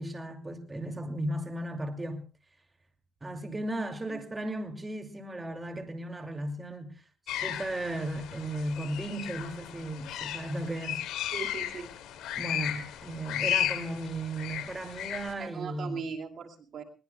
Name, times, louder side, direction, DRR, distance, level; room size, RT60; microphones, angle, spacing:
voice 1, 0.0-2.2 3.2-7.0 7.4-11.0 12.4-16.0, right 1 dB, 20° right, 2.6 m, -35 dB
sound 1, 7.3-15.3, left 12 dB, 90° left, 2.5 m, -35 dB
voice 2, 11.3-11.9 15.4-16.8, right 6 dB, 60° right, 2.5 m, -39 dB
21.5 x 20.0 x 2.3 m
cardioid pair, 90°, 0 cm